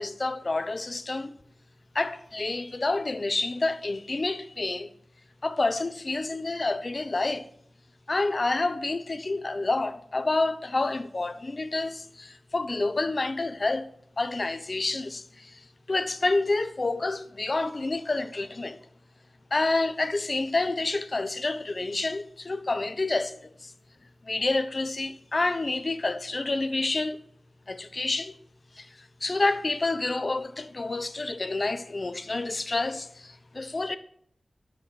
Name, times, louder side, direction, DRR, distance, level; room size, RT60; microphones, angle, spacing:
voice 1, 0.0-1.3 1.9-4.9 5.4-7.5 8.1-18.8 19.5-23.7 24.2-27.2 27.7-28.3 28.8-34.0, left 2 dB, 50° left, 0.9 m, -28 dB
12.0 x 6.4 x 6.5 m
wide cardioid pair, 55°, 0 cm